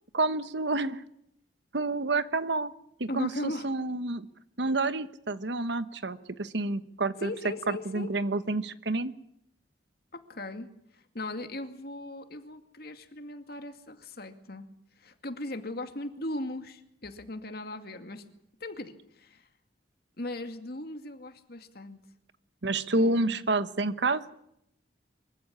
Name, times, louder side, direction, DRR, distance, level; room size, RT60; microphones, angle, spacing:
voice 1, 0.1-1.0 1.7-2.7 3.0-4.3 4.6-7.3 7.7-9.1 22.6-24.2, right 2 dB, 70° right, 13 dB, 1.2 m, -29 dB
voice 2, 3.1-3.7 7.2-8.1 10.1-10.7 10.9-14.7 15.0-18.2 18.6-19.5 20.2-22.0 23.0-23.4, left 1 dB, 55° left, 7 dB, 2.4 m, -38 dB
24.5 x 15.0 x 10.0 m, 0.76 s
head